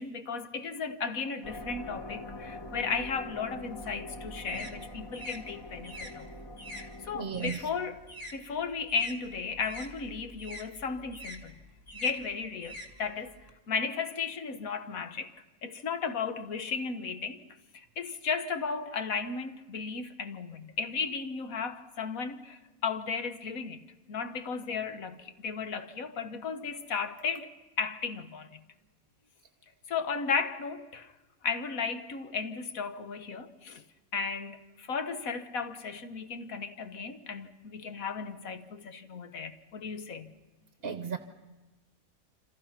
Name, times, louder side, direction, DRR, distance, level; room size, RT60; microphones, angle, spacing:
voice 1, 0.0-6.3 6.8-8.0 8.3-11.6 11.9-13.4 13.7-15.4 15.6-17.4 17.7-27.5 27.8-28.6 29.9-31.1 31.4-33.8 34.1-40.3, left 5 dB, 80° left, 1.7 m, -35 dB
sound 1, 1.4-7.5, left 2 dB, 20° left, 1.4 m, -44 dB
sound 2, 3.6-8.4 8.7-13.5, equal, 25° right, 2.3 m, -46 dB
voice 2, 7.1-7.6 40.8-41.2, right 6 dB, 50° right, 1.1 m, -34 dB
27.0 x 26.5 x 5.9 m
omnidirectional pair, 1.5 m